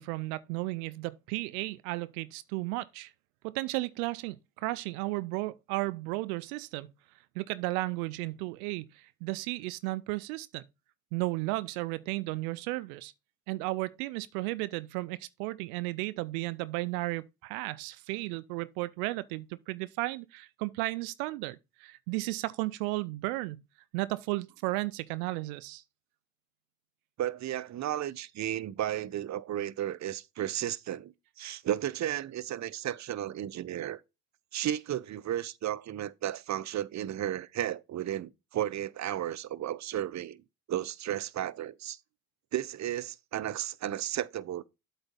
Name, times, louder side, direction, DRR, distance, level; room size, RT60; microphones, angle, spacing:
voice 1, 0.0-3.1 3.4-6.9 7.4-10.6 11.1-13.1 13.5-23.6 23.9-25.8, right 20 dB, 80° right, 0.5 m, -34 dB
voice 2, 27.2-34.0 34.5-40.4 40.7-42.0 42.5-44.6, right 12 dB, 40° right, 0.7 m, -34 dB
8.1 x 4.0 x 5.3 m
hypercardioid pair, 55°, 43 cm